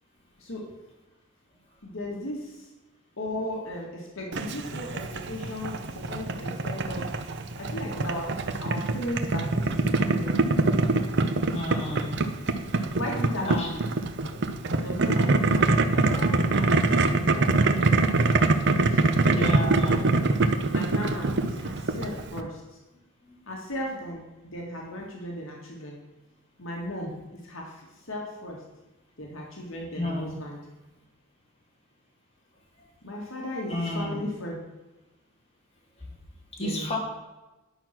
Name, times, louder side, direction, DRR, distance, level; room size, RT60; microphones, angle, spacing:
voice 1, 1.8-2.7 3.2-7.1 7.6-8.3 8.6-10.3 13.0-13.8 14.3-14.4 14.8-17.9 18.9-19.7 20.0-20.2 20.7-22.8 23.5-26.0 26.6-28.6 29.2-30.6 33.0-34.6 36.6-37.0, left 1 dB, 70° left, -2 dB, 2.0 m, -36 dB
Boiling, 4.3-22.4, right 3 dB, 55° right, 0.8 m, -24 dB
voice 2, 11.5-12.3 13.4-13.7 19.2-19.9 29.9-30.3 33.7-34.2 36.6-37.0, left 1 dB, 30° left, -4 dB, 3.1 m, -31 dB
11.0 x 6.3 x 6.0 m, 1.1 s
head